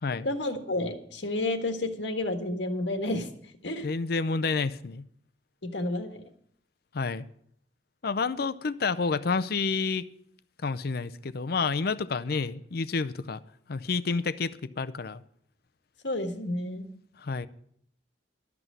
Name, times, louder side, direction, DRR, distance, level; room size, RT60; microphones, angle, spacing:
voice 1, 0.2-3.3 3.6-3.9 5.6-6.2 16.0-16.9, left 2 dB, 75° left, 1.5 m, -30 dB
voice 2, 3.8-5.0 6.9-7.3 8.0-10.1 10.6-13.4 13.7-15.2 17.2-17.5, left 4 dB, 55° left, 0.6 m, -29 dB
12.5 x 6.1 x 8.9 m
head